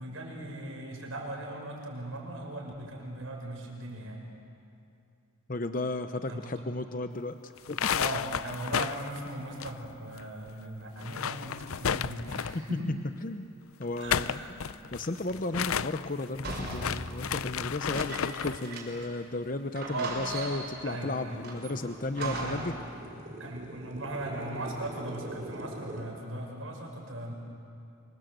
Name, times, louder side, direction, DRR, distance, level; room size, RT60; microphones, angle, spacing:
voice 1, 0.0-4.2 6.3-6.4 7.9-13.0 14.0-14.6 19.9-20.2 20.8-21.4 22.2-22.9 23.4-27.3, right 1 dB, 75° right, 0 dB, 6.2 m, -38 dB
voice 2, 5.5-7.9 12.3-12.4 12.7-12.8 13.2-13.5 13.8-14.4 14.9-22.7, left 2 dB, 40° left, 8 dB, 0.8 m, -34 dB
sound 1, 7.6-10.2 10.5-10.6 10.9-12.7 13.8-18.7, left 8 dB, 85° left, 0.5 m, -33 dB
sound 2, 16.4-19.2 19.4-19.5 19.8-20.9 21.4-22.8, right 2 dB, 50° right, 5.8 m, -39 dB
sound 3, 19.5-19.6 20.1-26.0, right 1 dB, 35° right, 3.2 m, -44 dB
26.0 x 25.5 x 8.0 m, 2.6 s
head